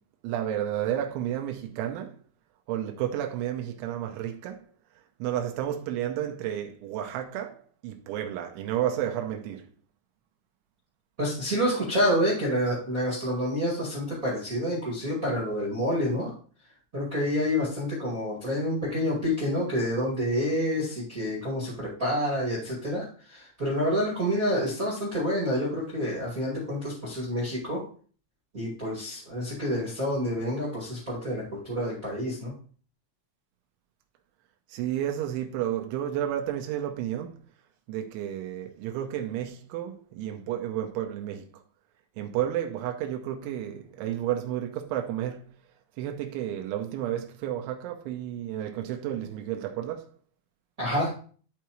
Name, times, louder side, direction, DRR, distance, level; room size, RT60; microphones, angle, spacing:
voice 1, 0.2-2.2 2.7-4.7 5.2-9.7 34.7-37.4 37.9-41.6 42.2-45.5 46.0-50.1, right 11 dB, 85° right, 3.1 m, -31 dB
voice 2, 11.2-16.3 16.9-27.8 28.5-32.5 50.8-51.1, equal, 45° right, 1.1 m, -28 dB
12.0 x 4.6 x 3.0 m
omnidirectional pair, 5.4 m